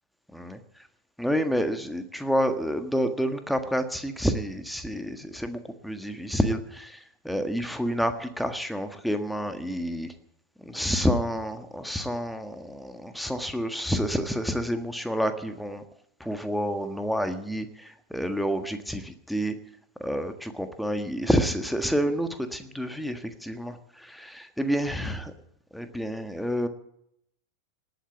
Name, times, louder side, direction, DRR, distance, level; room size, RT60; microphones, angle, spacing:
voice 1, 0.3-0.9 1.2-10.1 10.6-15.8 16.2-19.5 20.0-25.3 25.7-26.7, equal, ahead, 8 dB, 1.6 m, -29 dB
18.5 x 9.0 x 8.2 m, 0.73 s
figure-of-eight pair, 90°, 0 cm